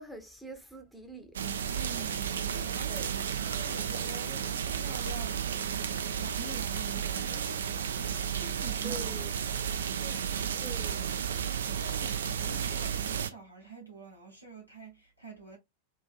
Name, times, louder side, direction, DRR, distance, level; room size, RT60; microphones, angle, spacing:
voice 1, 0.0-1.4 8.8-9.3 10.6-11.1, right 1 dB, ahead, 0.7 m, -44 dB
sound 1, 1.3-13.3, right 8 dB, 65° right, 0.3 m, -33 dB
voice 2, 1.8-7.9 8.4-9.1 9.9-10.8 11.8-15.6, right 4 dB, 85° right, 0.9 m, -46 dB
2.7 x 2.5 x 2.4 m
figure-of-eight pair, 90°, 0 cm